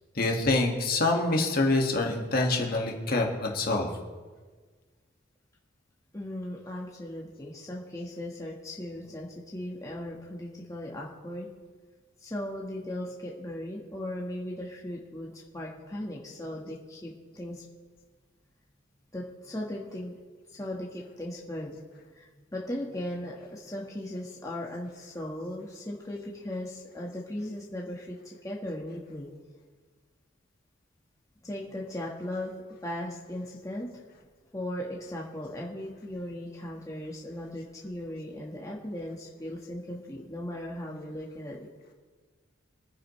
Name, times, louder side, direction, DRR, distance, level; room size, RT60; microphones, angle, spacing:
voice 1, 0.2-3.9, left 2 dB, 45° left, 1 dB, 1.9 m, -26 dB
voice 2, 6.1-11.5 12.2-17.6 19.1-20.1 20.6-21.8 22.2-28.1 28.4-29.3 31.4-32.5 32.8-33.9 34.5-41.7, left 1 dB, 15° left, -3 dB, 1.5 m, -37 dB
25.5 x 9.9 x 3.2 m, 1.4 s
head